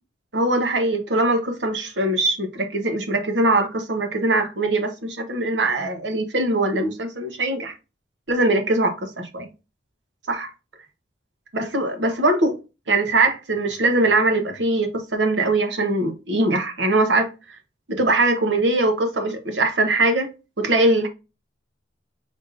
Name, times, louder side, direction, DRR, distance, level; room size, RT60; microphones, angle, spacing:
voice 1, 0.3-7.7 8.3-9.5 10.3-10.5 11.5-12.6 12.9-17.3 17.9-20.3 20.6-21.1, right 2 dB, 65° right, 1.0 m, -21 dB
5.4 x 3.6 x 2.6 m
head